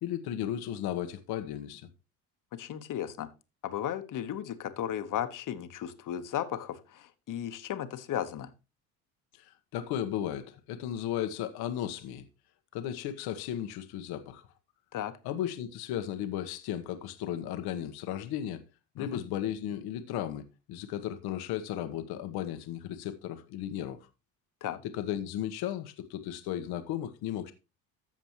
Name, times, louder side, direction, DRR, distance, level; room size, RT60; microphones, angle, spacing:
voice 1, 0.0-1.9 9.3-12.2 12.7-14.4 15.2-18.6 18.9-24.0 24.9-27.5, left 11 dB, 70° left, 1.2 m, -35 dB
voice 2, 2.5-3.3 3.6-8.5 14.9-15.1 19.0-19.2 24.6-24.8, left 10 dB, 50° left, 1.3 m, -35 dB
15.0 x 5.2 x 3.0 m
supercardioid pair, 85°, 40 cm